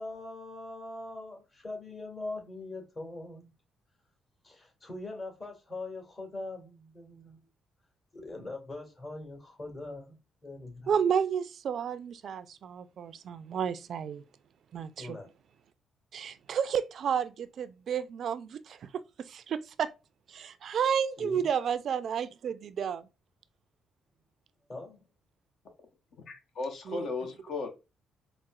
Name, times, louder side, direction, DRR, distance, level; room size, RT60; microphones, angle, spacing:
voice 1, 0.0-3.5 4.4-7.4 8.1-10.9 15.0-15.3 21.2-21.4 24.7-25.1, left 2 dB, 40° left, 1.6 m, -42 dB
voice 2, 10.9-14.2 14.7-15.2 16.1-18.8 19.2-19.9 20.3-23.1 26.9-27.1, right 7 dB, 65° right, 0.3 m, -31 dB
voice 3, 26.3-27.7, left 3 dB, 65° left, 0.8 m, -36 dB
4.0 x 2.0 x 2.3 m
supercardioid pair, 55°, 0 cm